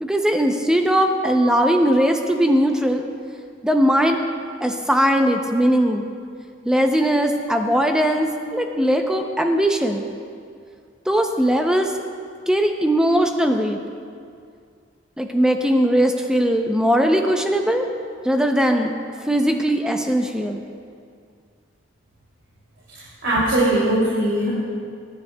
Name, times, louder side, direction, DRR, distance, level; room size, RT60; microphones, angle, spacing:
voice 1, 0.0-3.0 3.6-4.2 4.6-6.0 6.7-10.0 11.1-11.9 12.5-13.8 15.2-17.9 18.2-18.9 19.3-20.6, equal, 5° right, 4 dB, 0.5 m, -19 dB
voice 2, 22.9-24.5, right 1 dB, 80° right, -8 dB, 2.6 m, -20 dB
21.0 x 10.0 x 2.2 m, 2.2 s
head